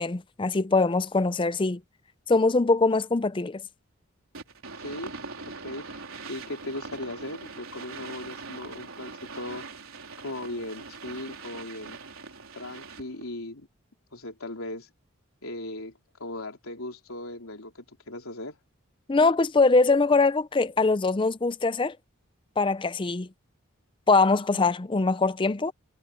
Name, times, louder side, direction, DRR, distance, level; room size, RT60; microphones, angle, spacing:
voice 1, 0.0-1.8 2.3-3.6 19.1-22.0 22.6-23.3 24.1-25.7, left 3 dB, 25° left, 0.5 m, -22 dB
sound 1, 4.3-13.2, right 4 dB, 80° right, 4.2 m, -42 dB
voice 2, 4.8-5.1 5.5-6.0 6.3-9.6 10.2-12.0 12.5-13.7 14.1-14.9 15.4-18.6, left 1 dB, 90° left, 3.8 m, -38 dB
head